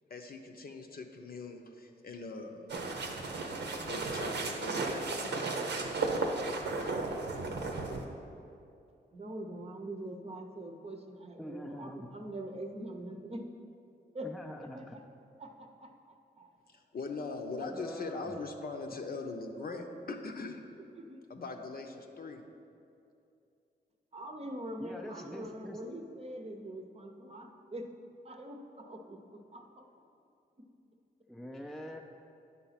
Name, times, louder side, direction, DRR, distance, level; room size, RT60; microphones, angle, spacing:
voice 1, 0.1-2.7 3.0-3.1 3.8-5.4 16.7-20.6 21.3-22.4, left 3 dB, 55° left, 4 dB, 0.8 m, -41 dB
sound 1, 2.7-8.1, right 3 dB, 75° right, 0.8 m, -34 dB
voice 2, 9.1-13.4 14.1-14.3 14.6-15.0 15.4-15.9 16.4-16.5 19.9-20.3 20.9-21.3 24.1-27.9 28.2-29.9, right 1 dB, 35° right, 4 dB, 0.8 m, -44 dB
voice 3, 11.4-12.1 14.2-15.0 17.6-18.3 24.8-25.8 31.3-32.0, equal, ahead, 1 dB, 0.5 m, -44 dB
9.9 x 4.0 x 5.8 m, 2.6 s
cardioid pair, 75°, 18 cm